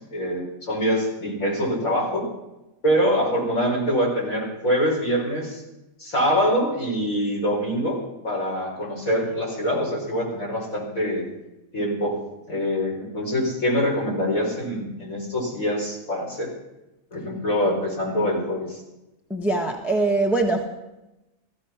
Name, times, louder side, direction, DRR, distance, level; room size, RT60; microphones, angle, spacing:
voice 1, 0.0-2.2 2.8-5.6 6.0-8.0 8.2-11.3 11.7-12.2 12.5-16.5 17.1-18.8, equal, 50° left, -3 dB, 5.4 m, -24 dB
voice 2, 19.3-20.7, right 2 dB, ahead, 2 dB, 1.2 m, -22 dB
15.5 x 14.5 x 5.9 m, 0.98 s
omnidirectional pair, 1.8 m